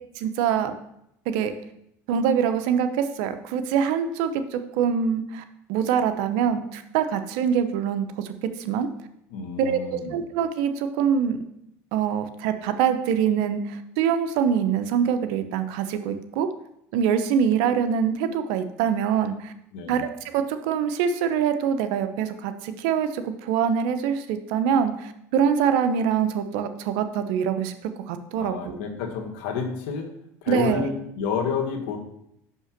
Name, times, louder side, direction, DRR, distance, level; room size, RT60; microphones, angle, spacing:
voice 1, 0.2-0.7 1.3-1.5 2.1-5.4 5.7-8.3 8.7-8.9 9.6-11.4 11.9-16.5 16.9-19.5 19.9-28.8 30.5-30.9, right 7 dB, 75° right, 9 dB, 0.8 m, -24 dB
voice 2, 9.3-10.2 19.7-20.0 28.4-30.1 30.4-32.0, left 6 dB, 80° left, 2 dB, 1.5 m, -30 dB
5.8 x 5.5 x 5.9 m, 0.78 s
supercardioid pair, 110°, 8 cm